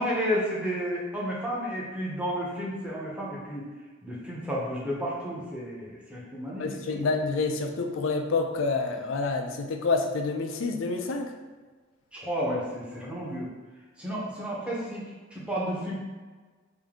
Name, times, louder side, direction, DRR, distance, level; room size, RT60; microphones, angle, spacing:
voice 1, 0.0-3.7 4.0-7.0 12.1-13.5 14.0-16.0, equal, 5° right, -6 dB, 0.8 m, -32 dB
voice 2, 6.6-11.3, left 3 dB, 70° left, 4 dB, 0.4 m, -28 dB
3.6 x 2.7 x 3.6 m, 1.4 s
head